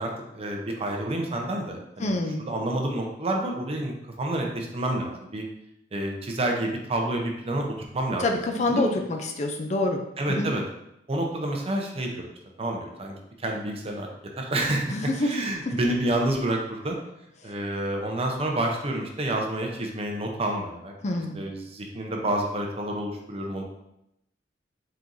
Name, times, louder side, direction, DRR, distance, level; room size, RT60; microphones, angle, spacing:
voice 1, 0.0-2.1 2.5-5.4 5.9-7.6 7.9-8.2 8.6-9.0 10.2-10.6 11.1-12.3 12.6-14.1 14.4-17.0 17.4-20.9 21.3-23.6, right 1 dB, 35° right, 1 dB, 0.6 m, -29 dB
voice 2, 2.0-2.4 8.2-10.0 10.3-10.5 14.9-15.3 21.0-21.4, left 2 dB, 40° left, 4 dB, 0.4 m, -26 dB
4.4 x 3.7 x 2.6 m, 0.82 s
head